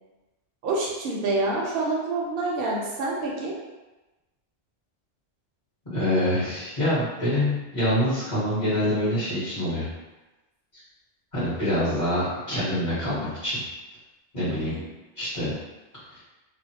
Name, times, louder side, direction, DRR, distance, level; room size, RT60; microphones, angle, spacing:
voice 1, 0.6-3.6 14.4-14.8, right 2 dB, 60° right, -3 dB, 0.7 m, -27 dB
voice 2, 5.9-9.8 11.3-13.6 14.3-14.7 15.2-15.5 16.1-16.2, left 1 dB, 35° left, -13 dB, 1.1 m, -25 dB
2.5 x 2.0 x 2.7 m, 1.1 s
omnidirectional pair, 1.2 m